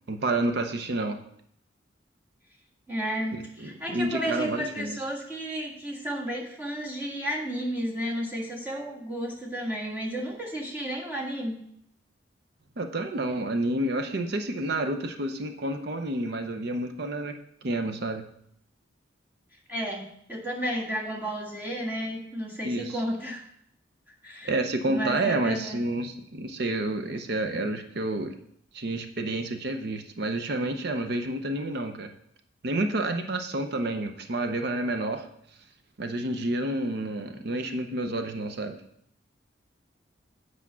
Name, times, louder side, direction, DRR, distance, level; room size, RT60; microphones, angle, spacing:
voice 1, 0.1-1.2 3.3-5.0 12.8-17.3 17.6-18.2 22.6-23.0 24.4-28.3 28.7-32.1 32.6-35.3 36.0-38.8, right 2 dB, 60° right, 6 dB, 0.7 m, -29 dB
voice 2, 2.9-11.6 19.7-23.4 24.2-24.5 24.9-25.8, equal, 10° right, -3 dB, 1.8 m, -32 dB
8.3 x 4.9 x 6.1 m, 0.70 s
head